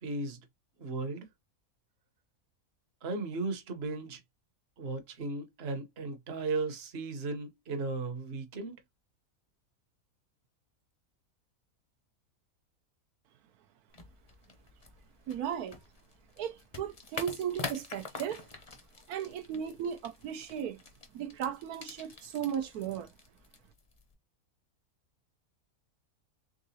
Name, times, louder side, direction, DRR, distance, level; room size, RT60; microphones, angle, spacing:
voice 1, 0.0-0.4 0.8-1.3 3.0-4.2 4.8-8.7, right 3 dB, 45° right, 1.1 m, -36 dB
sound 1, 13.9-24.1, left 4 dB, 35° left, 0.6 m, -46 dB
voice 2, 15.3-15.8 16.4-18.4 19.1-20.8 21.1-23.1, right 9 dB, 85° right, 1.2 m, -36 dB
3.8 x 3.6 x 2.7 m
omnidirectional pair, 1.6 m